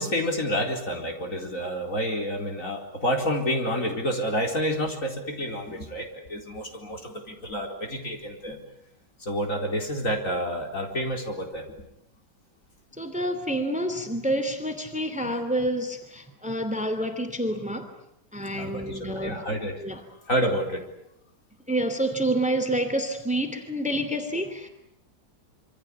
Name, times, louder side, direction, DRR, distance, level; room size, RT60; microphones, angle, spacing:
voice 1, 0.0-8.6 9.2-11.6 15.2-15.3 18.5-19.7 20.3-20.8, equal, 50° left, 3 dB, 4.6 m, -29 dB
voice 2, 12.9-17.9 18.3-19.4 19.8-20.0 21.7-24.7, right 1 dB, 5° right, 8 dB, 2.7 m, -28 dB
26.5 x 25.5 x 8.4 m, 0.77 s
omnidirectional pair, 1.8 m